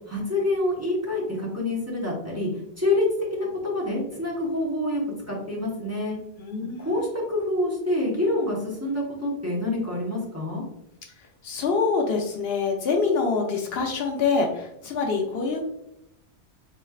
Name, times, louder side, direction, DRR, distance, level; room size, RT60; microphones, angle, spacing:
voice 1, 0.1-2.5 2.8-3.1 3.3-5.0 5.3-6.2 6.8-10.6, left 1 dB, 15° right, -5 dB, 0.9 m, -27 dB
voice 2, 6.4-7.1 11.4-15.6, left 4 dB, 65° left, 2 dB, 0.8 m, -25 dB
4.1 x 3.2 x 2.3 m, 0.82 s
omnidirectional pair, 1.1 m